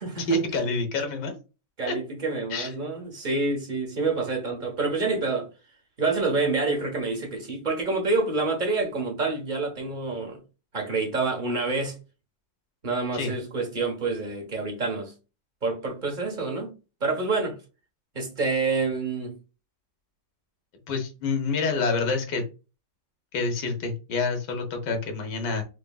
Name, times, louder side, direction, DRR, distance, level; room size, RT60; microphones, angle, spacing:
voice 1, 0.3-1.3 1.9-2.0 2.5-2.7 13.1-13.3 20.9-22.4 23.3-25.6, left 3 dB, 75° left, 1.7 m, -27 dB
voice 2, 1.8-5.5 6.0-10.4 10.7-12.0 12.8-15.1 15.6-16.7 17.0-17.6 18.1-19.3, right 3 dB, 30° right, 1.2 m, -27 dB
5.1 x 3.1 x 2.3 m
omnidirectional pair, 1.9 m